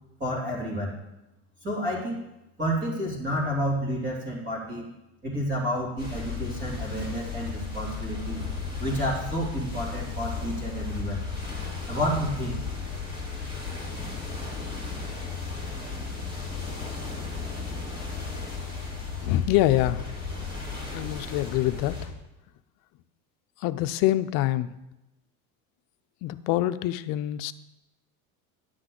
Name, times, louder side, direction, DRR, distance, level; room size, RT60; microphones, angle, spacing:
voice 1, 0.2-1.0 1.6-2.2 2.6-4.9 5.2-8.4 8.8-11.2 11.9-12.6, equal, 30° right, -4 dB, 3.0 m, -30 dB
sound 1, 6.0-22.1, left 4 dB, 10° right, 2.0 m, -34 dB
voice 2, 19.1-20.0 20.9-22.1 23.6-24.7 26.2-27.5, left 14 dB, 55° left, 11 dB, 0.6 m, -25 dB
10.0 x 7.8 x 3.9 m, 0.94 s
cardioid pair, 140°, 41 cm